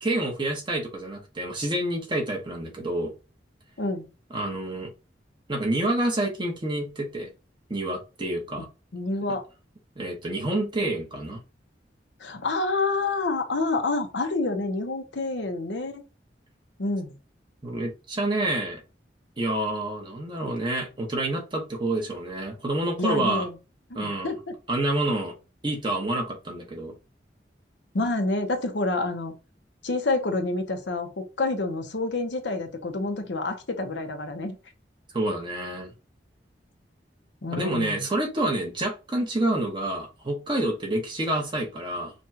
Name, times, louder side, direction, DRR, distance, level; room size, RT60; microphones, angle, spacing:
voice 1, 0.0-3.1 4.3-4.9 5.5-7.3 7.7-8.7 10.0-11.4 17.6-18.8 19.4-23.4 23.9-24.3 24.7-25.3 25.6-26.9 35.1-35.9 37.6-42.1, right 1 dB, 25° right, 1.1 m, -28 dB
voice 2, 8.9-9.4 12.2-16.0 16.8-17.1 23.0-23.5 23.9-24.5 27.9-29.3 29.8-31.1 31.4-34.6 37.4-38.0, left 2 dB, 85° left, 0.8 m, -28 dB
5.2 x 2.4 x 2.8 m
head